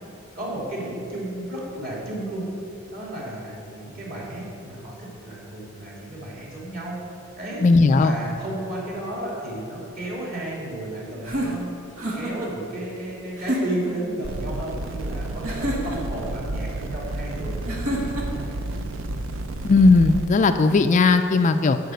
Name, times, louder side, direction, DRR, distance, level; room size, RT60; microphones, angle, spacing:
voice 1, 0.3-2.4 2.9-7.0 7.4-7.6 8.0-11.7 12.1-17.7 18.2-18.6 19.3-19.5, right 1 dB, 45° right, -4 dB, 2.8 m, -33 dB
voice 2, 7.6-8.1 19.6-21.8, left 3 dB, 35° left, 8 dB, 0.3 m, -17 dB
sound 1, 11.2-12.5 13.4-14.0 15.4-16.2 17.7-18.5, equal, 85° right, 1.7 m, -28 dB
sound 2, 14.2-20.3, right 2 dB, 65° right, 0.5 m, -31 dB
11.5 x 5.0 x 7.9 m, 2.7 s
head